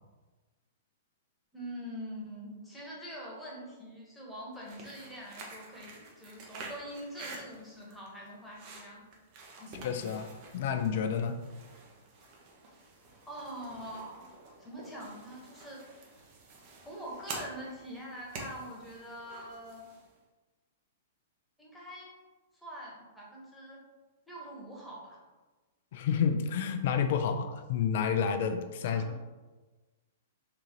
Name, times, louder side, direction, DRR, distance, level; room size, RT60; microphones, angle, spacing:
voice 1, 1.5-9.1 9.6-9.9 12.7-14.3 14.6-16.3 16.8-19.8 21.6-22.1 22.5-23.8 24.3-25.2 28.8-29.2, equal, 5° left, -5 dB, 1.2 m, -44 dB
sound 1, 4.5-20.1, right 3 dB, 40° right, 0.8 m, -48 dB
voice 2, 9.8-10.3 10.5-11.3 25.9-29.0, left 7 dB, 55° left, 8 dB, 0.4 m, -29 dB
3.8 x 3.6 x 3.0 m, 1.2 s
figure-of-eight pair, 105°, 0 cm